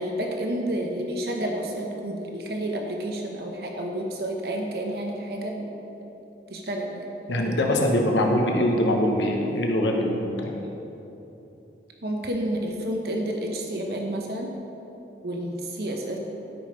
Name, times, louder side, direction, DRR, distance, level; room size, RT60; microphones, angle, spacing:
voice 1, 0.0-5.7 6.5-7.1 12.0-14.5 15.2-16.2, right 1 dB, 60° right, 1 dB, 0.9 m, -30 dB
voice 2, 7.3-10.6, left 1 dB, 90° left, 1 dB, 1.1 m, -23 dB
12.5 x 5.3 x 5.2 m, 3.0 s
head